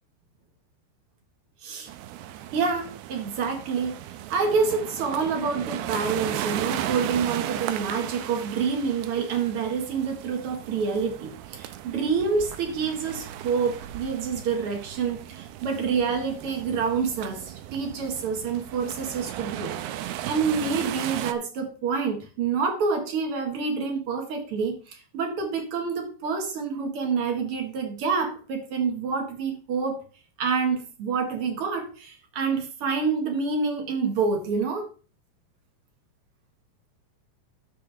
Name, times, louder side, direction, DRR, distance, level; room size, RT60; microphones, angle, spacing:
sound 1, 1.9-21.3, right 12 dB, 90° right, 2.3 m, -36 dB
voice 1, 2.5-4.0 4.3-30.0 30.4-34.9, right 5 dB, 75° right, 3 dB, 1.3 m, -27 dB
14.0 x 6.6 x 3.4 m, 0.39 s
omnidirectional pair, 5.2 m